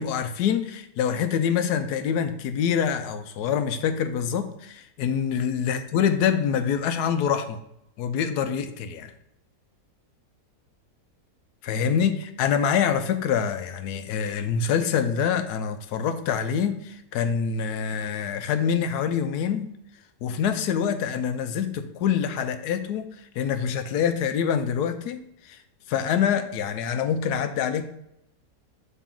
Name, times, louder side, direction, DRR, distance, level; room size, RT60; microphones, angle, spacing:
voice 1, 0.0-7.6 8.0-9.1 11.6-19.7 20.2-23.1 23.4-25.6 25.9-27.8, left 7 dB, 75° left, 9 dB, 1.1 m, -25 dB
7.2 x 4.0 x 3.6 m, 0.79 s
omnidirectional pair, 1.8 m